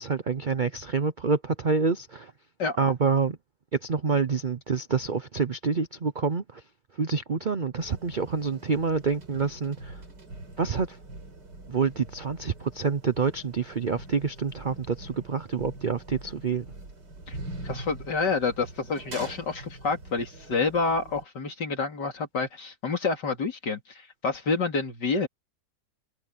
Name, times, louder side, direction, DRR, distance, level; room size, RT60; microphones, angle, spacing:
voice 1, 0.0-2.3 2.8-3.4 3.7-6.6 7.0-10.0 10.6-11.0 11.7-16.6, right 5 dB, 50° right, 0.5 m, -27 dB
sound 1, 7.8-21.2, right 2 dB, 70° right, 5.1 m, -44 dB
voice 2, 17.6-23.8 24.2-25.3, left 4 dB, 70° left, 3.5 m, -28 dB
omnidirectional pair, 1.9 m